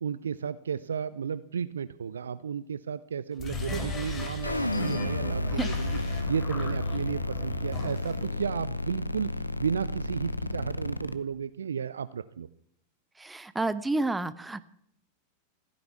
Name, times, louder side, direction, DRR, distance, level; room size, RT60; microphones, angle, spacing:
voice 1, 0.0-12.5, right 7 dB, 70° right, 16 dB, 0.5 m, -33 dB
sound 1, 3.3-8.4, left 2 dB, 25° left, 4.2 m, -37 dB
sound 2, 4.4-11.1, left 2 dB, 85° left, 0.8 m, -32 dB
voice 2, 13.2-14.6, right 2 dB, 10° right, 14 dB, 0.7 m, -30 dB
15.5 x 10.5 x 8.4 m, 0.71 s
figure-of-eight pair, 90°, 0 cm